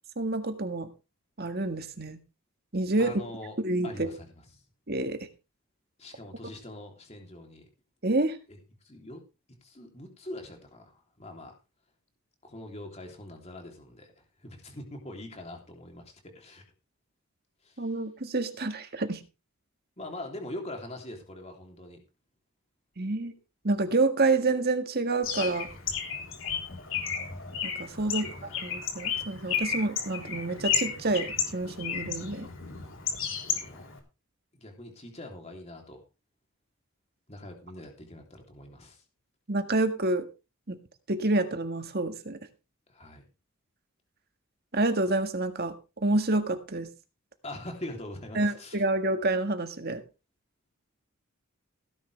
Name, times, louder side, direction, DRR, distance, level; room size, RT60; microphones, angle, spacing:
voice 1, 0.2-0.9 1.4-2.2 2.7-3.2 3.6-4.1 4.9-5.3 8.0-8.4 17.8-19.2 23.0-23.3 23.6-25.7 27.6-28.2 28.6-32.5 39.5-40.3 40.7-40.8 41.1-42.4 44.7-45.7 46.0-46.9 48.3-50.0, right 2 dB, 45° right, 7 dB, 1.8 m, -28 dB
voice 2, 3.0-3.6 3.8-4.6 6.0-7.7 8.5-9.2 9.6-11.5 12.4-16.6 17.6-18.0 20.0-22.0 28.0-28.6 33.4-33.9 34.5-36.0 37.3-39.0 42.9-43.3 47.4-48.8, left 1 dB, 30° left, 3 dB, 3.3 m, -43 dB
Bird, 25.2-34.0, left 7 dB, 65° left, 3.9 m, -33 dB
16.5 x 10.5 x 3.4 m, 0.29 s
head